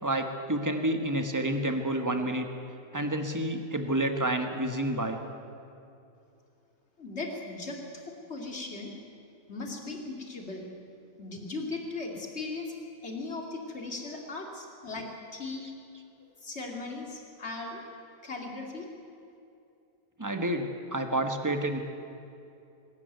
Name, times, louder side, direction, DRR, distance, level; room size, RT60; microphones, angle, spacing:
voice 1, 0.0-2.5 2.9-5.2 20.2-21.8, right 1 dB, 10° right, 5 dB, 1.5 m, -29 dB
voice 2, 7.0-8.0 8.3-8.9 9.5-10.7 11.2-12.7 13.0-15.7 16.4-17.8 18.2-18.9, left 3 dB, 45° left, 1 dB, 3.2 m, -38 dB
23.5 x 13.5 x 9.4 m, 2.6 s
omnidirectional pair, 1.6 m